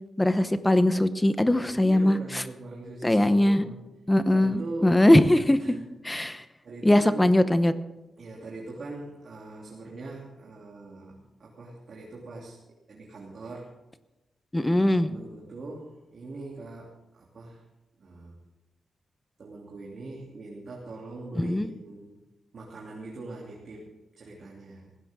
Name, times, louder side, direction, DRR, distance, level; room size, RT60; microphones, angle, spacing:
voice 1, 0.2-2.4 3.0-3.6 4.1-5.6 6.0-6.4 6.8-7.7 14.5-15.1 21.3-21.7, left 1 dB, 10° left, 11 dB, 0.9 m, -21 dB
voice 2, 1.6-3.8 4.3-5.0 5.6-5.8 6.6-7.3 8.2-12.6 12.9-13.8 14.8-16.9 17.2-17.6 18.0-18.4 19.4-22.2 22.5-24.9, right 2 dB, 45° right, -3 dB, 3.0 m, -41 dB
19.0 x 16.0 x 3.7 m, 1.1 s
wide cardioid pair, 175°, 0 cm